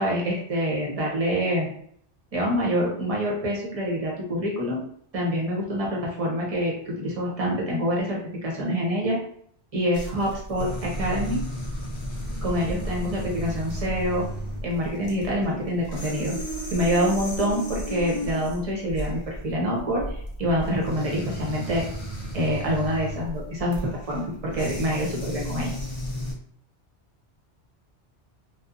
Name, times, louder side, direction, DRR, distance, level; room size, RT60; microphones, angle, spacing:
voice 1, 0.0-1.7 2.3-4.8 5.1-9.2 9.7-11.4 12.4-14.2 14.6-16.3 16.7-21.8 22.3-25.9, equal, 35° right, -2 dB, 0.8 m, -26 dB
sound 1, 9.9-26.3, equal, 40° left, 0.4 m, -34 dB
2.8 x 2.1 x 2.5 m, 0.63 s
omnidirectional pair, 1.2 m